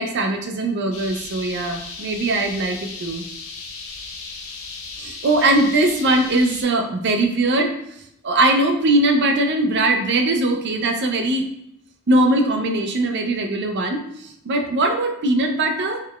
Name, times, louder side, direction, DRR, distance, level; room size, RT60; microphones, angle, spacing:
voice 1, 0.0-3.2 5.0-7.7 8.2-11.5 12.1-16.0, right 2 dB, 55° right, 5 dB, 0.5 m, -20 dB
sound 1, 0.9-6.6, left 4 dB, 70° left, 0.6 m, -36 dB
3.6 x 3.2 x 2.3 m, 0.76 s
head